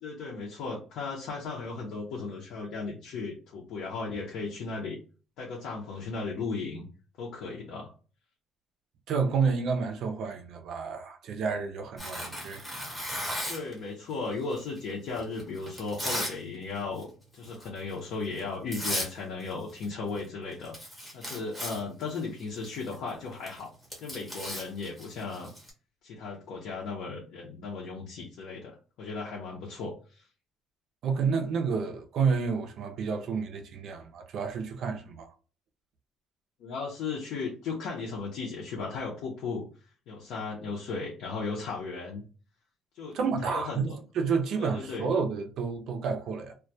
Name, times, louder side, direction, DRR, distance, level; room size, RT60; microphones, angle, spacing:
voice 1, 0.0-5.0 5.4-6.9 7.2-7.9 13.5-17.1 17.3-20.7 21.1-23.7 24.0-25.5 26.0-30.2 36.6-39.6 40.1-42.2 42.9-43.2 43.4-44.0 44.6-45.1, left 4 dB, 65° left, 0.6 m, -36 dB
voice 2, 9.1-12.7 31.0-35.3 43.1-46.5, right 5 dB, 55° right, 0.4 m, -30 dB
Tearing, 12.0-13.7 14.5-16.4 16.7-17.0 17.4-17.7 18.4-18.5 18.7-19.1 19.4-19.9 20.2-20.3 20.5-25.7, equal, 5° left, 0.8 m, -36 dB
2.2 x 2.1 x 2.6 m
cardioid pair, 165°, 0 cm